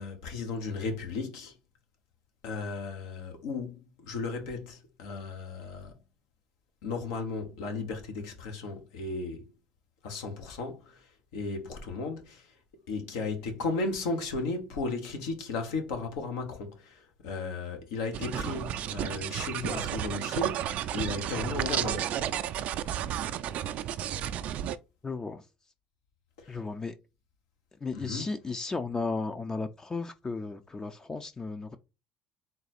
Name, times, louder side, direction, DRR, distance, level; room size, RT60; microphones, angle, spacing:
voice 1, 0.0-1.5 2.4-6.0 6.8-9.5 10.0-11.1 11.3-12.5 12.9-22.1 26.4-26.6 27.9-28.3, left 3 dB, 80° left, 1.0 m, -35 dB
sound 1, 18.1-24.8, right 11 dB, 60° right, 0.3 m, -32 dB
voice 2, 25.0-25.4 26.5-26.9 27.8-31.8, left 3 dB, 25° left, 0.4 m, -34 dB
3.9 x 2.3 x 4.1 m
hypercardioid pair, 70°, 3 cm